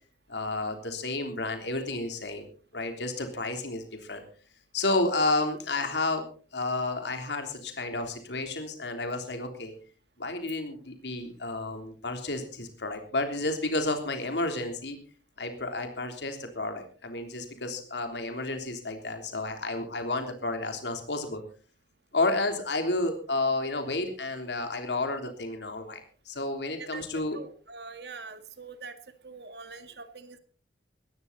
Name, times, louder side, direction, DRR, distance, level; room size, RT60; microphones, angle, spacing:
voice 1, 0.3-2.5 2.7-4.2 4.7-6.2 6.5-9.7 10.2-15.0 15.4-21.4 22.1-27.4, left 2 dB, 80° left, 5 dB, 3.4 m, -31 dB
voice 2, 27.3-30.4, right 4 dB, 65° right, 9 dB, 1.9 m, -44 dB
19.0 x 14.0 x 4.1 m, 0.41 s
head